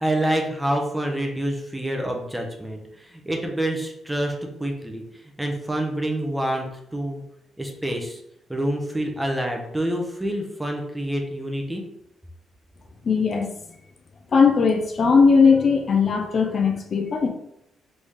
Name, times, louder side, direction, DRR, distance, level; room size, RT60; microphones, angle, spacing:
voice 1, 0.0-5.0 5.4-6.6 6.9-7.2 7.6-8.2 8.5-11.8, right 1 dB, 5° right, 2 dB, 0.7 m, -27 dB
voice 2, 13.0-13.5 14.3-17.3, left 5 dB, 35° left, 3 dB, 0.5 m, -18 dB
4.0 x 3.2 x 3.6 m, 0.79 s
cardioid pair, 155°, 0 cm